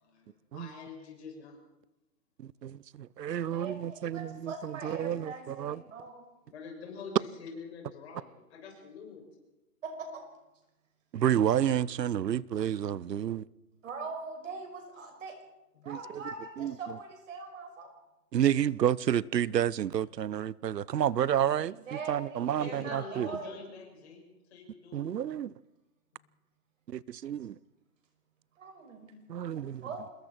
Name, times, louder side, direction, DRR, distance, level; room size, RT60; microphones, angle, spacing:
voice 1, 0.1-1.6 6.4-9.2 15.7-15.9 22.4-24.2 24.5-25.1 26.1-26.3, left 5 dB, 40° left, 6.7 m, -46 dB
voice 2, 2.4-5.8 11.1-13.4 15.9-16.0 16.6-16.8 18.3-21.8 22.1-23.3 24.9-25.5 26.9-27.6 29.3-29.8, right 10 dB, 90° right, 0.9 m, -30 dB
voice 3, 3.4-6.3 9.8-10.2 13.7-15.4 15.8-17.9 21.6-23.7 28.6-30.1, right 4 dB, 50° right, 5.8 m, -42 dB
27.0 x 22.0 x 4.5 m
hypercardioid pair, 165°, 48 cm